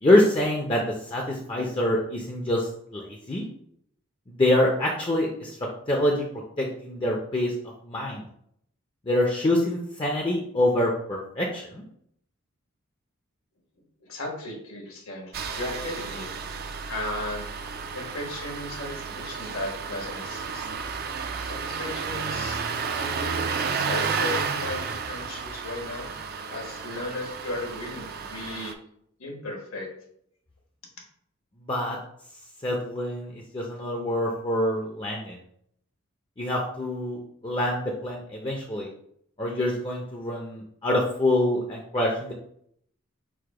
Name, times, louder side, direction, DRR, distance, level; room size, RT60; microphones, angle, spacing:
voice 1, 0.0-0.8 1.1-3.4 4.3-5.6 5.9-6.3 6.6-7.5 7.9-8.2 9.1-11.8 31.7-32.0 32.6-35.4 36.4-38.9 39.4-42.3, left 1 dB, 25° left, -1 dB, 0.5 m, -25 dB
voice 2, 14.0-16.3 16.9-17.4 17.9-20.7 21.4-22.6 23.0-26.1 26.5-28.7 29.2-29.9, left 2 dB, 75° left, 0 dB, 1.3 m, -36 dB
Engine starting, 15.3-28.7, right 5 dB, 45° right, 0.3 m, -32 dB
4.8 x 2.1 x 4.7 m, 0.69 s
head